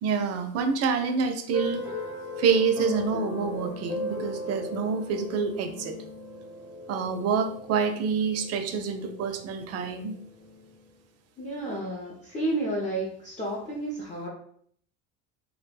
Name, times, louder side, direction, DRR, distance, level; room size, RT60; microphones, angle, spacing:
voice 1, 0.0-1.9 2.4-6.0 6.9-10.2, right 5 dB, 45° right, 7 dB, 0.4 m, -27 dB
sound 1, 1.5-10.7, left 2 dB, 80° left, 1.1 m, -37 dB
voice 2, 11.4-14.3, right 1 dB, 20° left, -5 dB, 0.5 m, -31 dB
2.3 x 2.0 x 3.2 m, 0.63 s
cardioid pair, 120°, 36 cm